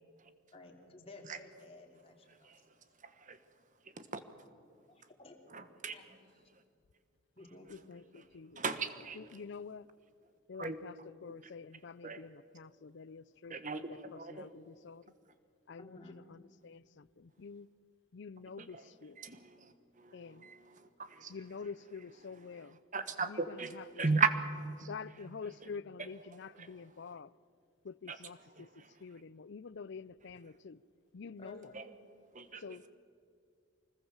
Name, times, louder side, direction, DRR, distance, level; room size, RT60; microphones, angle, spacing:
voice 1, 0.5-2.5 4.9-5.4 5.9-6.1 6.3-6.5 7.4-7.7 15.8-16.2 31.4-31.8, left 2 dB, 30° left, 3.1 m, -54 dB
voice 2, 5.5-5.9 8.2-8.3 8.6-9.4 10.6-10.8 12.0-12.3 13.5-14.5 18.6-18.9 19.2-21.7 22.2-24.5 24.8-25.3 25.6-25.7 26.0-26.1 26.5-26.7 28.1-28.3 28.6-28.9 31.7-31.8 32.3-32.6, right 4 dB, 35° right, 1.4 m, -37 dB
voice 3, 7.9-8.6 9.2-9.9 10.5-10.9 11.2-13.8 14.3-15.0 15.7-16.0 16.3-17.7 18.1-19.2 20.1-20.5 21.3-22.8 23.3-24.0 24.9-27.3 27.8-28.7 29.0-30.8 31.1-31.6 32.6-32.8, left 5 dB, 55° left, 0.5 m, -47 dB
25.0 x 20.0 x 7.3 m
head